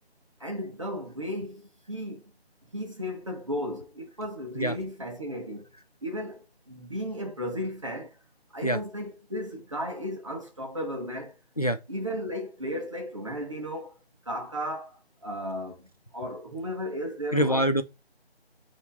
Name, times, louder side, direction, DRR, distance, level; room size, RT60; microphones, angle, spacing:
voice 1, 0.4-1.6 1.9-2.2 2.7-5.7 6.0-8.2 8.5-11.4 11.9-14.0 14.2-17.7, equal, 30° right, 0.9 m, -35 dB
voice 2, 17.3-17.8, equal, 35° left, 0.4 m, -24 dB
4.5 x 2.7 x 3.9 m
figure-of-eight pair, 175°, 33 cm